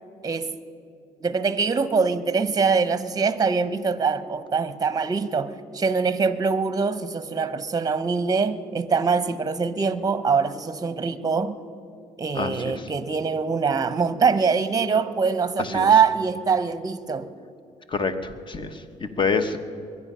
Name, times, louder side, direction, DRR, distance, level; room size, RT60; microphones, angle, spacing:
voice 1, 1.2-11.6 12.2-17.3, right 5 dB, 25° right, 12 dB, 0.8 m, -23 dB
voice 2, 15.6-15.9 17.9-19.6, left 4 dB, 35° left, 10 dB, 1.1 m, -26 dB
22.0 x 9.7 x 5.5 m, 2.4 s
cardioid pair, 95°, 14 cm